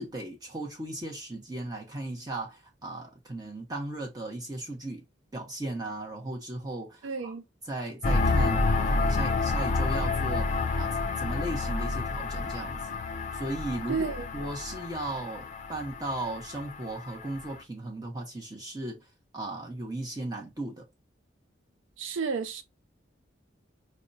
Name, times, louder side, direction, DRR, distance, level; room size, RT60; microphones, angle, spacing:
voice 1, 0.0-5.0 5.3-7.3 7.7-12.8 13.3-19.1 19.3-20.9, right 1 dB, 20° right, 0.7 m, -36 dB
voice 2, 7.0-7.4 13.9-14.3 22.0-22.6, right 5 dB, 85° right, 0.5 m, -31 dB
sound 1, 8.0-17.6, left 3 dB, 40° left, 0.3 m, -29 dB
5.0 x 2.1 x 2.6 m
head